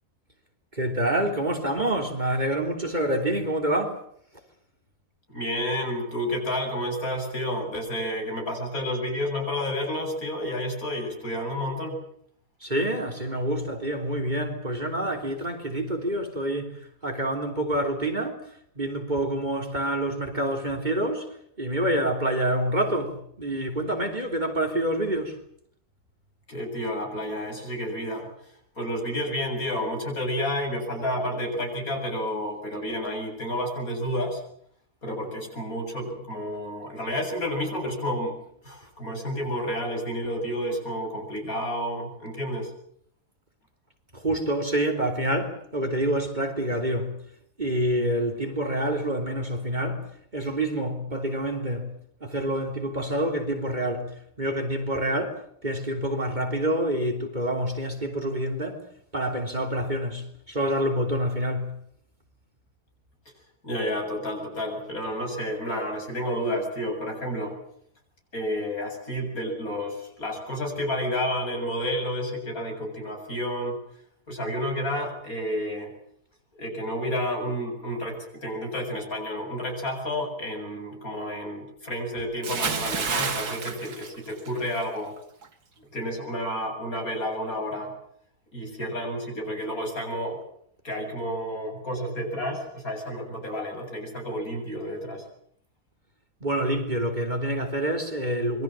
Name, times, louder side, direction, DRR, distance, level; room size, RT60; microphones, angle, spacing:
voice 1, 0.7-4.0 12.6-16.7 17.0-18.4 18.8-21.3 21.6-25.4 44.1-47.1 47.6-50.1 50.3-51.9 52.2-54.1 54.4-58.8 59.1-61.7 96.4-98.6, right 1 dB, 30° right, 3.6 m, -27 dB
voice 2, 5.3-12.0 26.5-28.3 28.7-34.4 35.0-38.3 38.6-42.7 63.6-67.6 68.3-73.8 74.3-75.9 76.5-85.1 85.9-87.9 88.5-90.4 90.8-95.2, equal, 65° left, 8.3 m, -30 dB
Bathtub (filling or washing) / Splash splatter, 82.4-84.9 85.2-85.5, right 5 dB, 80° right, 2.4 m, -30 dB
27.0 x 23.0 x 7.7 m
omnidirectional pair, 1.6 m